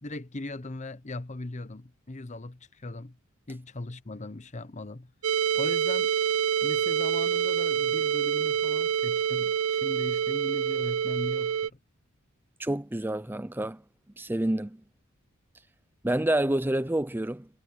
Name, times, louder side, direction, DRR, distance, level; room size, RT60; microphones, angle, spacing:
voice 1, 0.0-3.2 3.5-5.1 5.5-6.1 6.6-11.8, left 2 dB, 35° left, 0.9 m, -39 dB
sound 1, 5.2-11.7, right 8 dB, 90° right, 0.6 m, -26 dB
voice 2, 12.6-13.8 14.2-14.8 16.0-17.5, right 1 dB, 10° right, 0.6 m, -28 dB
head